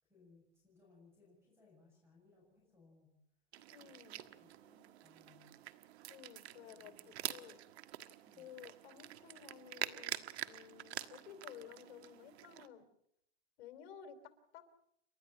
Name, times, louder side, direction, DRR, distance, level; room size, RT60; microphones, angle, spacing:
voice 1, 0.0-3.2 3.8-5.5 6.7-7.4 8.2-8.5, left 3 dB, 5° right, -1 dB, 6.7 m, -67 dB
sound 1, 3.5-12.7, right 13 dB, 70° right, 1.6 m, -47 dB
voice 2, 3.7-4.1 6.1-7.6 8.4-12.8 13.6-14.6, left 9 dB, 60° left, 8 dB, 3.7 m, -54 dB
29.5 x 12.5 x 8.7 m, 0.74 s
supercardioid pair, 155°, 33 cm